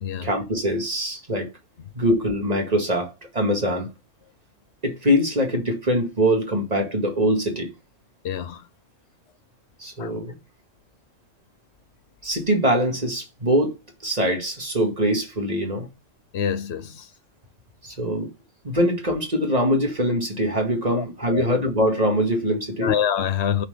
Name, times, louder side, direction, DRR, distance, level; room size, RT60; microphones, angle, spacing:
voice 1, 0.2-1.5 1.9-3.9 4.8-7.7 9.8-10.4 12.2-13.8 14.0-15.9 17.8-18.3 18.6-22.9, equal, 30° right, 2.1 m, -23 dB
voice 2, 8.2-8.7 10.0-10.1 16.3-17.1 20.9-21.5 22.8-23.7, left 8 dB, 60° left, 1.0 m, -26 dB
7.4 x 4.5 x 5.5 m
omnidirectional pair, 1.3 m